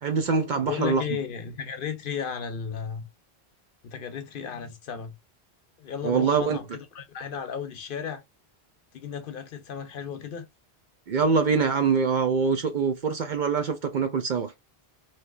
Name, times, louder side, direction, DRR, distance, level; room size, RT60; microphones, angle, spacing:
voice 1, 0.0-1.0 6.0-6.6 11.1-14.5, right 5 dB, 60° right, 0.6 m, -24 dB
voice 2, 0.6-3.1 3.8-5.1 5.8-8.2 8.9-10.4, left 7 dB, 60° left, 0.8 m, -34 dB
3.2 x 2.7 x 2.4 m
omnidirectional pair, 1.1 m